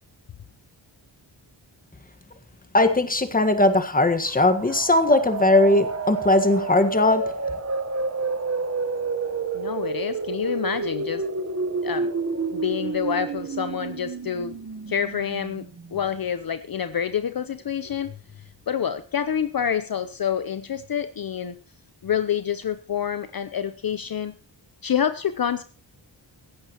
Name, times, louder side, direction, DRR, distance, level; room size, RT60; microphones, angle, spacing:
voice 1, 2.7-7.2, left 2 dB, 20° left, 1.6 m, -19 dB
sound 1, 4.3-16.0, right 4 dB, 35° right, 1.2 m, -29 dB
voice 2, 9.5-11.2 11.8-12.1 12.5-14.6 14.9-15.7 15.9-21.5 22.0-24.3 24.8-25.6, left 8 dB, 50° left, 0.8 m, -27 dB
16.5 x 15.0 x 3.0 m
wide cardioid pair, 170°, 44 cm